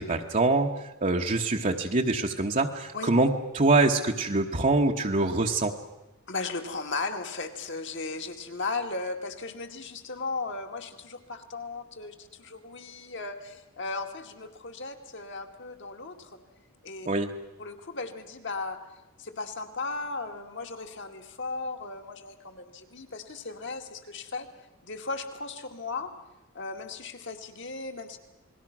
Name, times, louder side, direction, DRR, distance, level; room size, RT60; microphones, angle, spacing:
voice 1, 0.0-5.7 17.1-17.3, right 2 dB, 35° right, 0 dB, 1.0 m, -25 dB
voice 2, 6.3-16.3 16.8-17.1 17.6-18.8 19.2-24.5 24.8-26.1 26.5-28.2, left 3 dB, 55° left, 5 dB, 2.2 m, -36 dB
29.0 x 20.5 x 6.1 m, 1.0 s
head